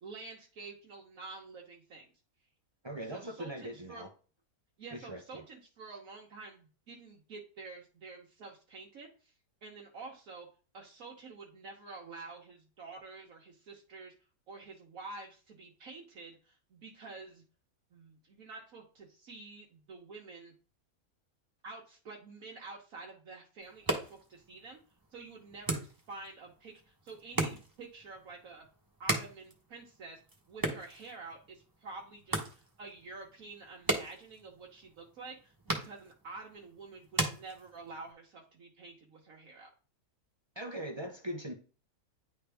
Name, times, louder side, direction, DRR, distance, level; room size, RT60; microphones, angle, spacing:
voice 1, 0.0-2.1 3.0-4.0 4.8-9.3 9.6-10.5 10.7-14.1 14.5-17.4 17.9-20.5 21.6-24.8 25.1-28.7 29.0-30.2 30.5-39.7, right 3 dB, 70° right, 1.3 m, -48 dB
voice 2, 2.8-4.1 4.9-5.4 40.6-41.5, right 1 dB, 40° right, 0.3 m, -40 dB
sound 1, 23.6-38.1, right 2 dB, 15° right, 0.9 m, -39 dB
9.9 x 3.4 x 3.4 m
omnidirectional pair, 1.6 m